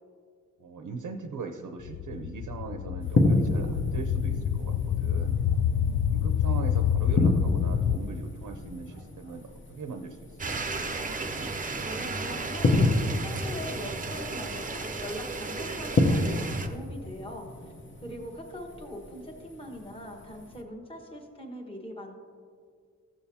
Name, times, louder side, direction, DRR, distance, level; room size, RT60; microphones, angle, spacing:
voice 1, 0.6-5.4 6.0-10.6 18.1-18.3, right 4 dB, 85° right, 5 dB, 0.7 m, -40 dB
sound 1, 1.8-8.0, left 9 dB, 65° left, 0.4 m, -27 dB
sound 2, 3.0-20.6, left 2 dB, 40° left, 0.8 m, -31 dB
sound 3, 10.4-16.7, right 3 dB, 25° right, 0.6 m, -34 dB
voice 2, 11.8-17.7 18.0-22.1, left 1 dB, 15° left, 0 dB, 1.2 m, -41 dB
15.0 x 6.9 x 2.8 m, 2.1 s
wide cardioid pair, 145°, 31 cm